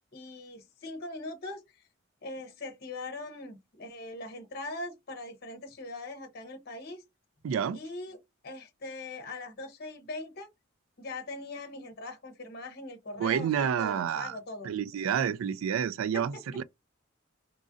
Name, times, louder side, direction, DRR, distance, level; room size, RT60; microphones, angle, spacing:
voice 1, 0.1-1.8 2.2-7.0 7.7-8.2 8.4-10.5 11.0-14.7 15.2-15.3 16.1-16.4, left 2 dB, 50° left, 0.7 m, -41 dB
voice 2, 7.4-7.8 13.2-14.4 14.6-16.6, right 8 dB, 80° right, 0.3 m, -29 dB
3.0 x 2.4 x 2.5 m
head